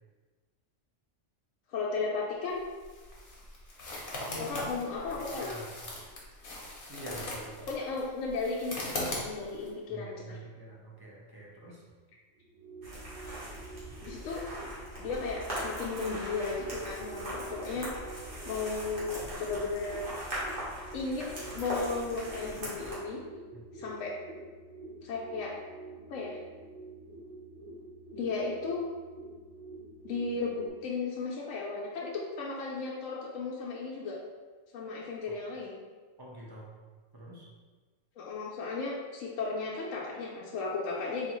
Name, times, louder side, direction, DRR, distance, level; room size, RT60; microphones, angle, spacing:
voice 1, 1.7-2.6 4.5-5.5 7.7-10.4 14.0-14.4 15.0-17.9 18.5-20.1 20.9-23.2 23.7-24.1 25.0-25.6 26.1-26.4 28.1-28.8 30.0-34.2 34.7-35.8 38.2-41.3, left 4 dB, 80° left, -3 dB, 0.9 m, -35 dB
sound 1, 2.5-9.7, left 1 dB, 50° left, 0.9 m, -40 dB
voice 2, 4.2-4.6 4.9-5.7 6.9-7.7 9.9-11.8 23.5-23.6 36.2-36.7 37.1-37.5, right 1 dB, 25° right, -5 dB, 0.6 m, -46 dB
sound 2, 12.3-30.7, right 2 dB, 75° right, 1.1 m, -48 dB
sound 3, 12.8-23.0, equal, 45° right, 1.2 m, -40 dB
3.9 x 2.8 x 3.0 m, 1.4 s
omnidirectional pair, 1.3 m